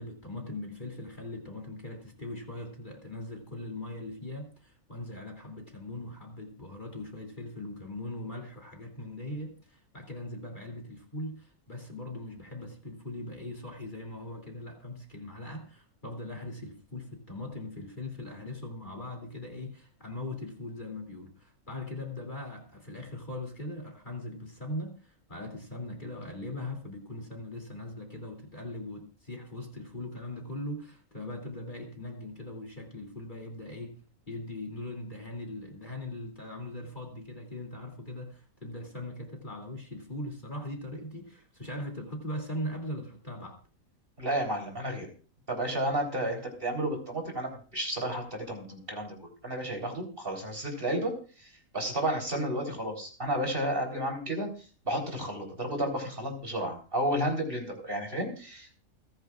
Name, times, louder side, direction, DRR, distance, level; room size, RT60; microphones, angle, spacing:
voice 1, 0.0-34.0 34.3-43.6, left 1 dB, 35° left, 1 dB, 2.9 m, -40 dB
voice 2, 44.2-45.1 45.5-49.2 49.4-51.1 51.4-54.5 54.9-58.7, right 1 dB, 40° right, 2 dB, 4.0 m, -32 dB
28.5 x 10.5 x 2.4 m, 0.37 s
omnidirectional pair, 1.5 m